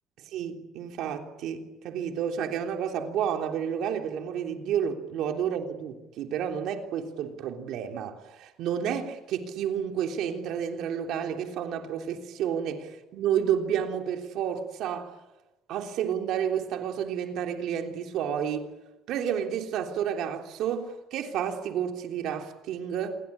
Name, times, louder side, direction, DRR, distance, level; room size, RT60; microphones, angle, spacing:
voice 1, 0.2-15.1 15.7-18.7 19.1-23.2, right 8 dB, 55° right, 3.4 m, -30 dB
28.0 x 23.0 x 8.7 m
cardioid pair, 180°, 0 cm